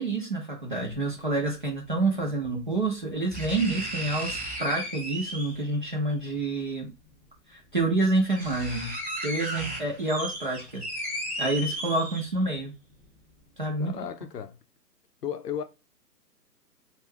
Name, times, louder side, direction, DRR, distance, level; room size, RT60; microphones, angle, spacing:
voice 1, 0.0-6.9 7.5-9.0 9.2-10.8 11.4-12.7 13.6-14.0, right 2 dB, 30° right, 0.5 m, -28 dB
sound 1, 0.9-1.0 2.4-2.5 3.3-5.7 7.0-7.1 7.8-7.9 8.1-12.5 13.0-13.1, right 1 dB, ahead, 0.7 m, -35 dB
voice 2, 13.8-14.5 15.2-15.6, left 9 dB, 70° left, 0.6 m, -34 dB
2.4 x 2.2 x 3.3 m
figure-of-eight pair, 140°, 50 cm